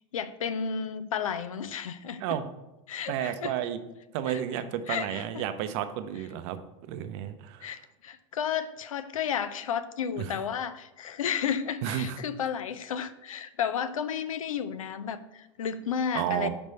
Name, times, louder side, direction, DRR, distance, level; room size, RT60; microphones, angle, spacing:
voice 1, 0.1-2.4 2.9-3.5 4.3-4.4 4.9-5.4 7.6-16.5, left 7 dB, 90° left, 12 dB, 0.4 m, -32 dB
voice 2, 3.1-3.8 4.1-6.6 6.9-7.8 10.2-10.3 11.8-12.2 16.1-16.5, right 10 dB, 60° right, 10 dB, 0.6 m, -31 dB
5.2 x 3.4 x 5.4 m, 0.95 s
hypercardioid pair, 100°, 17 cm